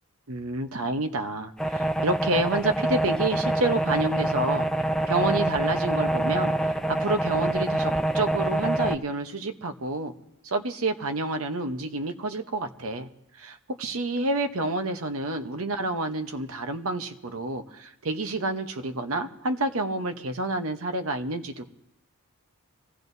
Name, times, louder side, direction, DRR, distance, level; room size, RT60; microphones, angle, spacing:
voice 1, 0.3-4.7 5.1-10.1 10.4-13.1 13.4-21.7, right 2 dB, 70° right, 7 dB, 0.9 m, -29 dB
sound 1, 1.6-9.0, right 1 dB, 5° left, 0.5 m, -26 dB
25.0 x 15.5 x 2.7 m, 0.79 s
head